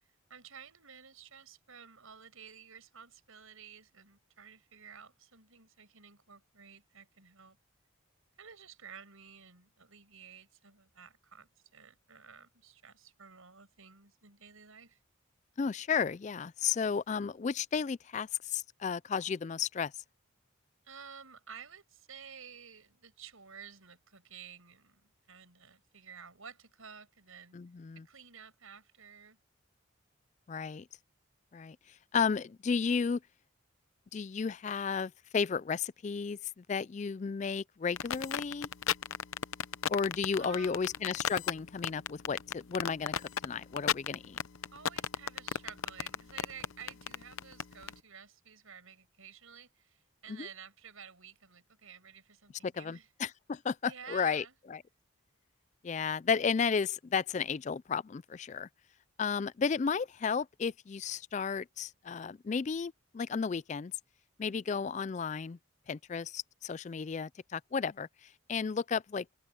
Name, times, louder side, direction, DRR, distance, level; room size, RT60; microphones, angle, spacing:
voice 1, 0.3-7.6 8.4-15.0 20.8-27.6 28.0-29.4 40.4-41.1 44.7-53.1 53.8-54.5 64.7-64.9, right 7 dB, 90° right, 6.6 m, -52 dB
voice 2, 15.6-19.9 27.5-28.1 30.5-30.9 31.5-31.8 32.1-33.2 34.1-38.7 39.9-43.1 43.4-44.4 50.3-50.5 52.6-54.8 55.8-58.7 59.2-63.9 64.4-65.6 65.9-69.3, left 6 dB, 35° left, 0.3 m, -33 dB
sound 1, 38.0-47.9, left 8 dB, 80° left, 0.7 m, -34 dB
open air
head